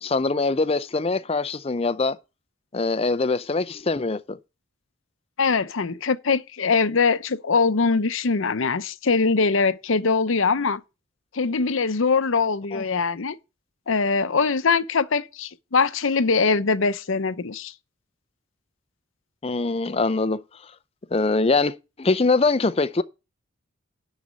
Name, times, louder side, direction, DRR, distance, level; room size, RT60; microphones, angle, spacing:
voice 1, 0.0-2.2 2.7-4.4 12.7-12.8 19.4-20.4 21.1-23.0, left 3 dB, 30° left, 0.5 m, -23 dB
voice 2, 5.4-10.8 11.3-13.4 13.9-17.7, left 4 dB, 70° left, 0.7 m, -22 dB
11.5 x 4.1 x 7.3 m
head